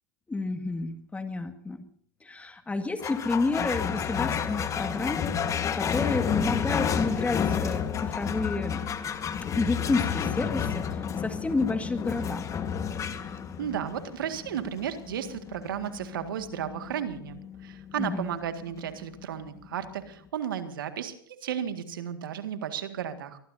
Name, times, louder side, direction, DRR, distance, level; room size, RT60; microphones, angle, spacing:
voice 1, 0.3-1.8 2.2-8.8 9.5-12.5 18.0-18.3, left 3 dB, 10° left, 8 dB, 1.9 m, -30 dB
sound 1, 3.0-19.7, left 7 dB, 30° left, 1.5 m, -31 dB
voice 2, 13.2-23.4, right 9 dB, 80° right, 8 dB, 1.9 m, -34 dB
23.0 x 20.5 x 2.7 m, 0.62 s
hypercardioid pair, 100°, 11 cm